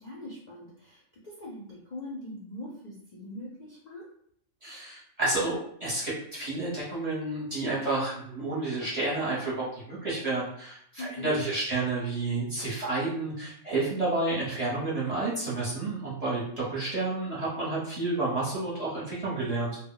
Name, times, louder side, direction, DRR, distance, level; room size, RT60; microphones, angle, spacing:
voice 1, 0.0-4.1 11.0-11.3, left 1 dB, 50° left, -5 dB, 0.5 m, -42 dB
voice 2, 4.6-19.8, right 2 dB, 35° right, -8 dB, 0.8 m, -30 dB
2.1 x 2.1 x 3.7 m, 0.67 s
omnidirectional pair, 1.4 m